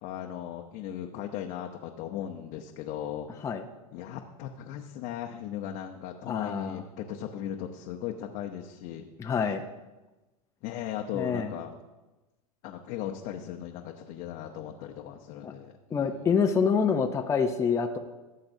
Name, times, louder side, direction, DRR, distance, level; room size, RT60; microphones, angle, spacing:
voice 1, 0.0-3.5 3.9-9.1 10.6-11.7 12.6-16.3, left 10 dB, 45° left, 2 dB, 0.8 m, -37 dB
voice 2, 6.3-6.8 9.2-9.6 11.1-11.5 15.4-15.5 15.9-18.0, left 6 dB, 15° left, 4 dB, 0.6 m, -26 dB
16.0 x 7.5 x 2.7 m, 1.1 s
hypercardioid pair, 120°, 19 cm